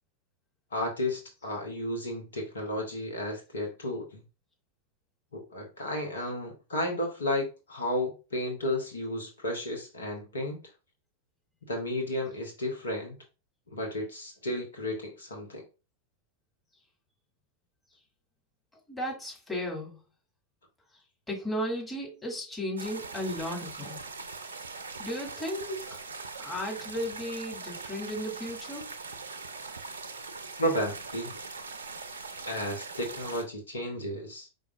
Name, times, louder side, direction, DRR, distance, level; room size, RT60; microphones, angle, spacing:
voice 1, 0.7-4.2 5.3-10.6 11.7-13.2 13.7-15.6 30.6-31.4 32.4-34.5, left 1 dB, 70° left, 1.0 m, -33 dB
voice 2, 18.9-20.0 21.3-24.0 25.0-26.0 26.4-28.8, equal, 10° left, 2.1 m, -35 dB
sound 1, 22.8-33.4, right 4 dB, 70° right, 0.5 m, -41 dB
4.9 x 3.9 x 2.5 m
figure-of-eight pair, 90°, 0 cm